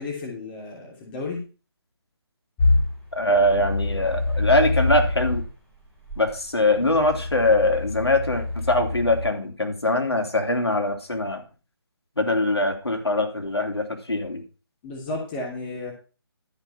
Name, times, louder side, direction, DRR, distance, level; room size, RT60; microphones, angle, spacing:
voice 1, 0.0-1.4 14.8-15.9, left 3 dB, 25° left, 0 dB, 3.1 m, -33 dB
Wooshing Fan, 2.6-5.5 6.1-9.3, left 2 dB, 10° left, 2.6 m, -26 dB
voice 2, 3.1-5.4 6.2-11.4 12.2-14.4, left 1 dB, 85° left, 4 dB, 3.3 m, -22 dB
13.0 x 5.5 x 5.7 m, 0.34 s
figure-of-eight pair, 150°, 13 cm